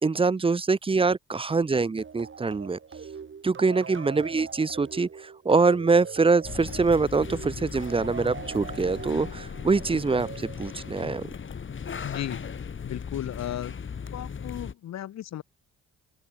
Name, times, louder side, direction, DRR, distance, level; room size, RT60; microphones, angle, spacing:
voice 1, 0.0-2.8 3.4-11.2, right 4 dB, 20° right, 0.7 m, -24 dB
sound 1, 2.0-11.2, right 6 dB, 40° right, 7.2 m, -42 dB
sound 2, 6.4-14.7, left 6 dB, 40° left, 3.3 m, -37 dB
voice 2, 12.0-12.4 12.8-13.7 14.1-15.4, left 12 dB, 60° left, 1.2 m, -35 dB
open air
cardioid pair, 90°, 30 cm